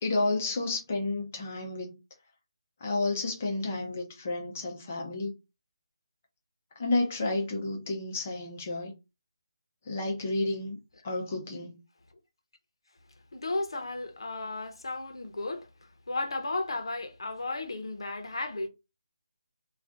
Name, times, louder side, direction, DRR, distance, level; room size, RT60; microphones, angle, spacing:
voice 1, 0.0-2.0 2.8-5.3 6.8-8.9 9.9-10.8 11.0-11.8, left 2 dB, 20° left, 0.6 m, -31 dB
voice 2, 13.3-18.7, left 2 dB, 65° left, 0.8 m, -34 dB
2.5 x 2.4 x 3.4 m
hypercardioid pair, 175°, 3 cm